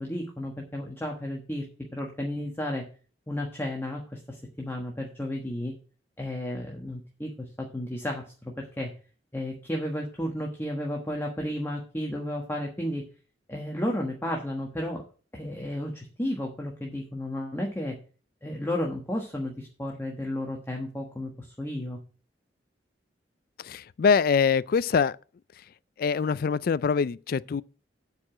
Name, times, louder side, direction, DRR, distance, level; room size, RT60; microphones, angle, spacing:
voice 1, 0.0-1.7 1.9-2.8 3.3-4.2 4.6-5.7 6.2-7.3 7.6-8.9 9.3-13.0 13.5-15.0 15.3-18.0 18.4-22.0, left 1 dB, 15° left, 1.3 m, -33 dB
voice 2, 23.6-25.2 26.0-27.6, left 5 dB, 55° left, 0.3 m, -24 dB
8.3 x 4.9 x 7.6 m
head